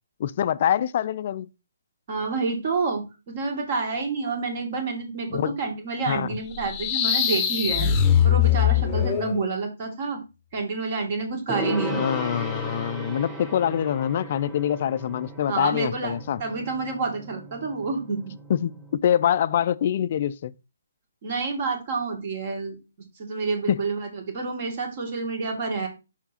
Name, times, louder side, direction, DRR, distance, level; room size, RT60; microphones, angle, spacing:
voice 1, 0.2-1.5 5.3-5.6 6.1-6.4 11.9-16.4 18.5-20.5 23.7-23.8, left 10 dB, 45° left, 0.4 m, -25 dB
voice 2, 2.1-7.9 8.2-10.2 10.5-12.0 15.5-16.1 16.4-18.2 21.2-22.8 23.2-25.9, right 4 dB, 45° right, 2.2 m, -28 dB
sound 1, 6.5-9.4, left 9 dB, 20° left, 0.8 m, -21 dB
Gong, 11.5-18.9, right 1 dB, 5° right, 1.5 m, -36 dB
5.8 x 4.5 x 4.2 m
hypercardioid pair, 150°, 0 cm